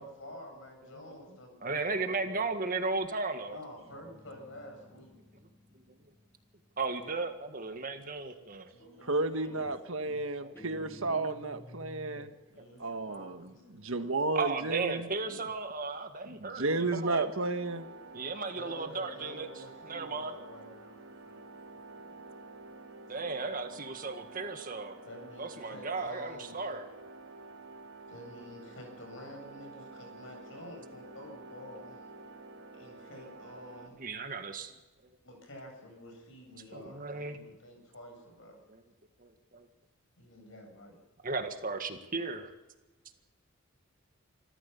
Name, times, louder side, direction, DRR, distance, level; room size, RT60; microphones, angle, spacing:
voice 1, 0.0-2.4 3.5-5.2 7.4-7.5 8.7-9.6 12.5-14.1 18.5-21.0 21.2-22.4 25.0-26.7 28.1-32.2 32.7-34.0 35.2-38.6 40.2-41.0, left 1 dB, 65° left, 3 dB, 8.0 m, -49 dB
voice 2, 1.6-3.6 6.8-8.7 10.4-10.5 11.8-12.7 14.4-17.3 18.1-19.5 19.8-20.3 23.1-25.0 25.4-26.9 34.0-34.7 36.7-37.4 38.7-38.8 39.2-39.7 41.2-42.5, right 3 dB, 40° right, 7 dB, 1.8 m, -35 dB
Guitar, 3.7-7.3 8.8-9.2 9.4-12.4, equal, 10° left, 3.3 m, -53 dB
voice 3, 9.0-12.3 12.8-15.1 16.4-17.9, right 2 dB, 70° right, 8 dB, 1.5 m, -32 dB
sound 1, 16.7-33.9, right 3 dB, 85° right, 3.7 m, -50 dB
26.5 x 14.0 x 7.0 m, 1.2 s
head